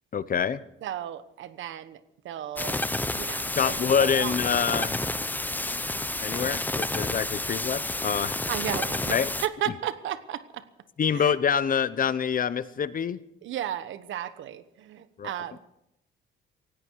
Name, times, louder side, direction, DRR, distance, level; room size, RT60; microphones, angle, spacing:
voice 1, 0.1-0.6 3.6-5.0 6.2-8.4 9.1-9.3 11.0-13.2 15.2-15.3, left 7 dB, 45° left, 16 dB, 0.9 m, -26 dB
voice 2, 0.8-2.8 3.1-4.4 8.5-10.7 11.1-11.4 13.4-15.6, right 11 dB, 75° right, 14 dB, 1.1 m, -34 dB
sound 1, 2.6-9.5, left 2 dB, 10° left, 0.8 m, -30 dB
18.5 x 16.5 x 4.7 m, 0.81 s
cardioid pair, 90°, 20 cm